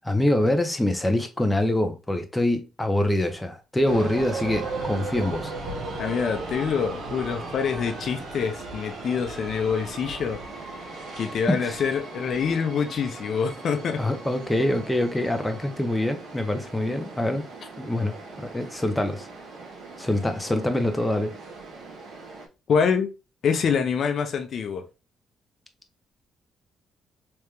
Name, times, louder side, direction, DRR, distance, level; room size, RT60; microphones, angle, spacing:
voice 1, 0.0-5.5 11.5-11.8 14.0-17.5 17.8-19.3 20.0-21.3, left 1 dB, 10° left, 0.7 m, -25 dB
sound 1, 3.8-22.5, right 3 dB, 65° right, 1.5 m, -37 dB
voice 2, 6.0-10.4 11.2-14.0 22.7-23.1 23.4-24.8, left 6 dB, 60° left, 0.6 m, -25 dB
3.4 x 3.2 x 3.1 m
cardioid pair, 90°, 0 cm